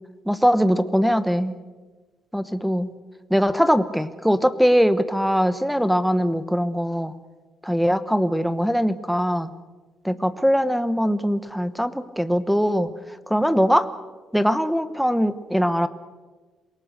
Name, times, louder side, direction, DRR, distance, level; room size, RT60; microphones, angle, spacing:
voice 1, 0.3-1.5 2.3-2.9 3.3-7.1 7.6-9.5 10.0-12.9 13.3-13.9 14.3-15.9, equal, ahead, 13 dB, 1.1 m, -21 dB
27.5 x 18.5 x 6.6 m, 1.3 s
cardioid pair, 90°, 0 cm